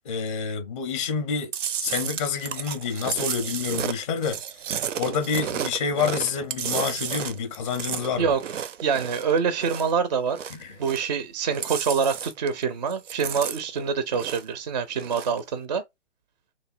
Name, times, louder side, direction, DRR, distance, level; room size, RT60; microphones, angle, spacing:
voice 1, 0.0-1.5 1.8-4.4 5.0-8.3 10.6-10.8, left 6 dB, 25° left, 0.5 m, -28 dB
Chewing mastication, 1.5-10.0 10.3-11.2 11.5-12.6 12.9-14.6 14.9-15.4, right 8 dB, 85° right, 0.5 m, -32 dB
voice 2, 8.8-10.4 10.8-15.8, right 6 dB, 35° right, 0.4 m, -25 dB
2.9 x 2.6 x 2.4 m
hypercardioid pair, 140°, 37 cm